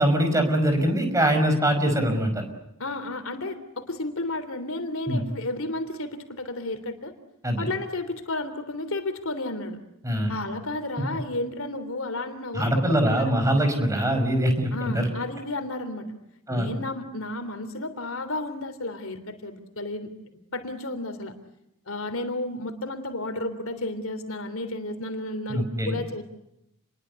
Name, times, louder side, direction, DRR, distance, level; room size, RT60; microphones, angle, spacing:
voice 1, 0.0-2.4 5.1-5.2 7.4-7.6 10.0-10.3 12.5-15.1 16.5-16.7 25.5-26.0, equal, 15° right, 6 dB, 5.6 m, -23 dB
voice 2, 2.8-7.1 7.6-9.8 10.3-13.5 14.7-16.1 16.5-20.1 20.5-21.3 21.9-26.2, left 2 dB, 65° left, 9 dB, 3.4 m, -32 dB
29.5 x 22.5 x 8.3 m, 0.84 s
head